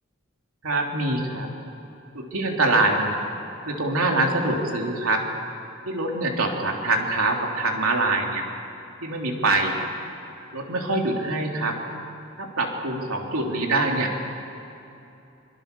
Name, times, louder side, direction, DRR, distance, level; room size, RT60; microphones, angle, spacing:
voice 1, 0.6-1.5 2.1-3.2 3.6-5.3 5.8-8.4 9.0-9.8 10.5-11.8 12.4-14.1, right 2 dB, 85° right, 1 dB, 3.4 m, -24 dB
25.5 x 23.5 x 7.0 m, 2.9 s
head